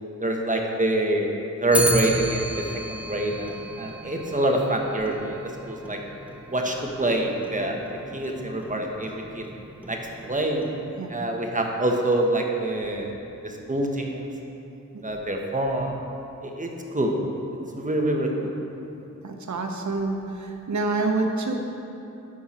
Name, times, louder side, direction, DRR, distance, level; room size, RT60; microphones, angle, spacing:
voice 1, 0.2-1.3 1.6-6.0 6.5-7.8 8.1-9.4 9.9-10.0 10.3-10.6 11.1-13.1 13.4-14.3 15.0-16.0 16.4-17.2 17.7-18.6, right 1 dB, 25° right, 1 dB, 1.3 m, -26 dB
Clock, 1.7-11.1, right 1 dB, 5° right, 0.9 m, -34 dB
voice 2, 19.2-21.6, right 3 dB, 65° right, 3 dB, 1.0 m, -27 dB
11.0 x 5.8 x 4.4 m, 2.9 s
cardioid pair, 55°, 31 cm